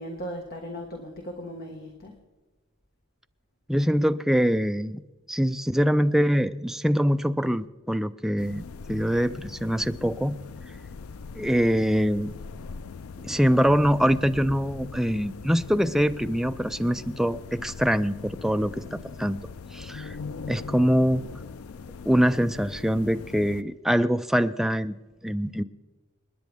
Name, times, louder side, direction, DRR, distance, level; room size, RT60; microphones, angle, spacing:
voice 1, 0.0-2.1 14.4-14.5, equal, 45° left, 1 dB, 1.6 m, -37 dB
voice 2, 3.7-5.0 5.3-10.4 11.3-12.3 13.2-19.4 19.7-20.2 20.5-21.2 22.1-24.9 25.2-25.6, equal, ahead, 10 dB, 0.3 m, -24 dB
sound 1, 8.4-23.6, left 5 dB, 75° left, 0.5 m, -41 dB
28.5 x 10.0 x 3.5 m, 1.2 s
head